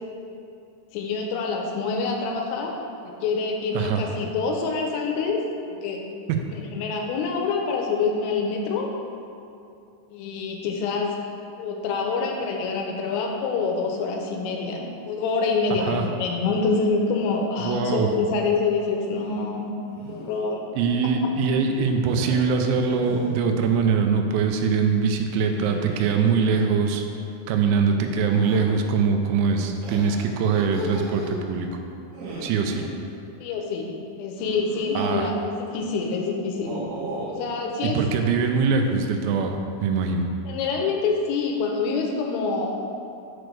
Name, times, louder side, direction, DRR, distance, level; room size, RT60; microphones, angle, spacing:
voice 1, 0.9-2.7 3.0-6.0 6.5-8.9 10.1-11.2 11.6-19.7 20.1-20.6 33.4-33.9 34.2-35.3 35.6-36.8 37.3-38.0 40.5-42.7, left 4 dB, 85° left, 1 dB, 3.2 m, -26 dB
voice 2, 17.6-18.1 20.8-27.0 27.5-31.7 32.4-32.9 35.0-35.3 37.8-40.3, right 5 dB, 90° right, 4 dB, 3.3 m, -22 dB
sound 1, 19.1-19.5 19.9-20.4 22.1-23.3 25.4-26.8 28.2-28.6 29.8-31.4 32.1-32.9 34.4-35.5 36.5-37.5, right 2 dB, 65° right, 3.0 m, -36 dB
7.8 x 6.1 x 3.3 m, 2.6 s
omnidirectional pair, 5.9 m